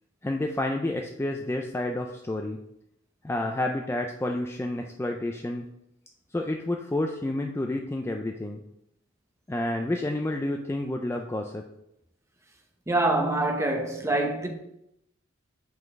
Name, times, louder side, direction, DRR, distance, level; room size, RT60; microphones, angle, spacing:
voice 1, 0.2-2.6 3.2-5.6 6.3-8.6 9.5-11.6, left 1 dB, 15° left, 0.4 m, -29 dB
voice 2, 12.9-14.5, right 2 dB, 15° right, 0.9 m, -25 dB
5.4 x 3.9 x 6.0 m
head